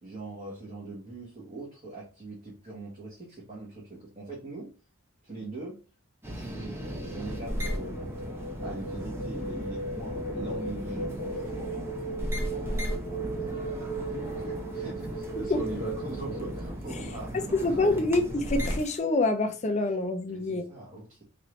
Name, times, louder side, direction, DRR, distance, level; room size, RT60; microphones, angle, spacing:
voice 1, 0.0-4.7 5.2-5.8 6.2-8.1 8.6-18.0 20.2-21.2, right 2 dB, 35° right, 1.4 m, -42 dB
sound 1, 6.2-19.0, equal, 10° right, 0.8 m, -36 dB
sound 2, 6.8-16.7, right 2 dB, 85° left, 0.7 m, -38 dB
voice 2, 17.6-20.6, left 2 dB, 35° left, 0.5 m, -26 dB
4.0 x 2.6 x 3.1 m
head